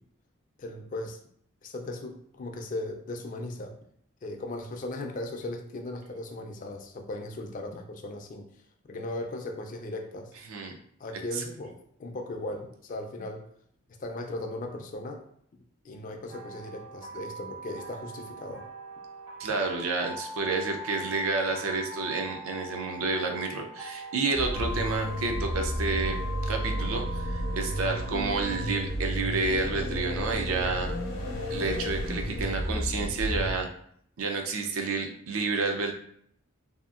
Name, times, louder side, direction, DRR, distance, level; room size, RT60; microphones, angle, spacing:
voice 1, 0.6-1.2 1.6-3.7 4.2-8.5 8.9-10.3 11.0-13.5 14.0-15.2 15.8-18.6, left 2 dB, 40° left, 3 dB, 0.3 m, -37 dB
sound 1, 16.3-28.8, right 1 dB, 25° right, 0.5 m, -42 dB
voice 2, 19.4-30.9 31.5-33.7 34.2-35.9, right 3 dB, 80° right, 3 dB, 0.5 m, -30 dB
sound 2, 24.3-33.5, equal, 65° left, 0.7 m, -32 dB
2.8 x 2.4 x 2.4 m, 0.66 s
head